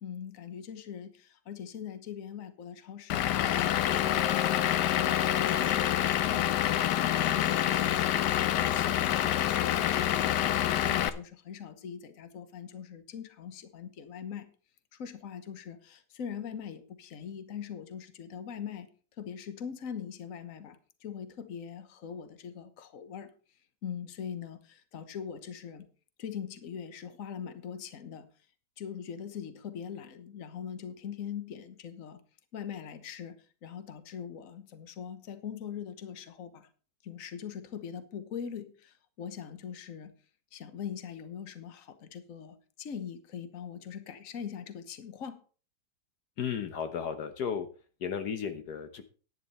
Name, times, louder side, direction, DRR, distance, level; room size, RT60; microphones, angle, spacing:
voice 1, 0.0-3.7 4.0-6.7 7.0-10.3 10.7-14.5 14.9-18.9 19.2-23.3 23.8-25.8 26.2-28.3 28.8-32.2 32.5-33.4 33.6-36.7 37.0-40.1 40.5-45.4, left 8 dB, 55° left, 10 dB, 1.4 m, -42 dB
Vehicle / Engine, 3.1-11.1, left 11 dB, 90° left, 1.3 m, -27 dB
voice 2, 46.4-47.7 48.0-49.0, left 7 dB, 70° left, 8 dB, 1.5 m, -34 dB
11.0 x 10.0 x 4.2 m, 0.37 s
omnidirectional pair, 1.8 m